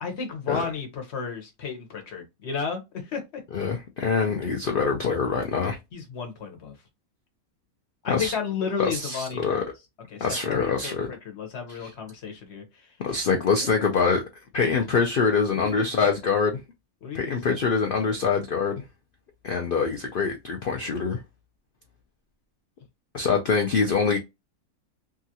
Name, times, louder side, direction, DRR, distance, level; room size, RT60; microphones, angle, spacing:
voice 1, 0.0-3.4 5.9-6.7 8.0-9.6 10.1-12.9 15.5-15.7 16.0-16.4 17.0-17.3 18.0-18.4, left 6 dB, 55° left, 1.1 m, -33 dB
voice 2, 3.5-5.8 8.1-8.3 8.8-9.6 10.2-11.1 11.7-11.9 13.0-14.2 14.5-16.6 17.1-18.8 19.4-21.2 23.1-24.2, left 5 dB, 85° left, 0.4 m, -24 dB
2.8 x 2.4 x 2.7 m
omnidirectional pair, 1.6 m